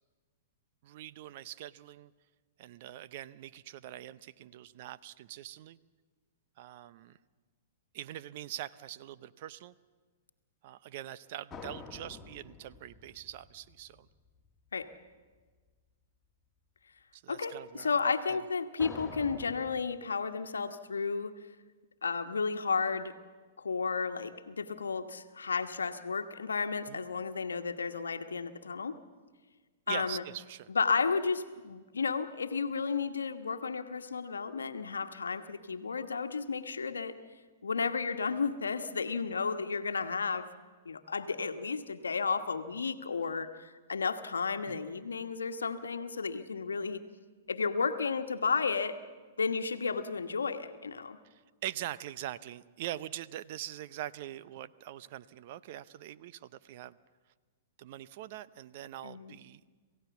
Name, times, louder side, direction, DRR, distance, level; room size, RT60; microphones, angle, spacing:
voice 1, 0.8-2.1 2.6-5.8 6.6-7.2 7.9-9.7 10.6-14.1 17.1-17.9 18.3-18.4 26.9-27.1 29.9-30.7 44.7-44.9 51.3-57.0 57.8-59.7, right 13 dB, 50° right, 16 dB, 0.7 m, -43 dB
sound 1, 11.5-14.5 18.8-19.8, left 4 dB, 15° left, 2.2 m, -47 dB
voice 2, 17.3-21.3 22.0-23.2 23.6-28.9 29.9-30.2 30.7-37.2 37.6-40.5 40.8-47.0 47.5-49.0 49.4-51.2 59.0-59.4, left 5 dB, 80° left, 8 dB, 1.2 m, -33 dB
27.5 x 16.0 x 7.1 m, 1.5 s
hypercardioid pair, 110°, 0 cm